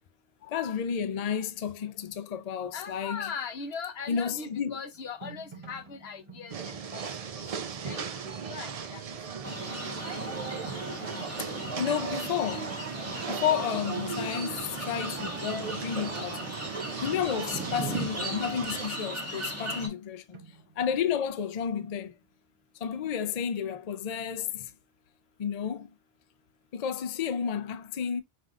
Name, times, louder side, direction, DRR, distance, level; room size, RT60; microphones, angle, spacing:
voice 1, 0.4-3.3 4.1-4.8 11.8-12.8 13.3-16.4 17.0-20.4 20.8-22.1 22.8-24.7 25.4-25.9 26.7-28.2, left 8 dB, 50° left, 0.5 m, -31 dB
voice 2, 2.7-7.0 7.8-8.0 8.5-9.0, left 6 dB, 80° left, 1.1 m, -39 dB
sound 1, 4.9-13.2 13.6-14.0 14.8-14.9 15.2-17.7 20.3-22.2, right 5 dB, 30° right, 0.8 m, -53 dB
sound 2, 6.5-18.9, right 6 dB, 50° right, 0.5 m, -37 dB
sound 3, 9.4-19.9, right 1 dB, 15° right, 1.2 m, -37 dB
5.4 x 2.7 x 2.4 m
omnidirectional pair, 1.0 m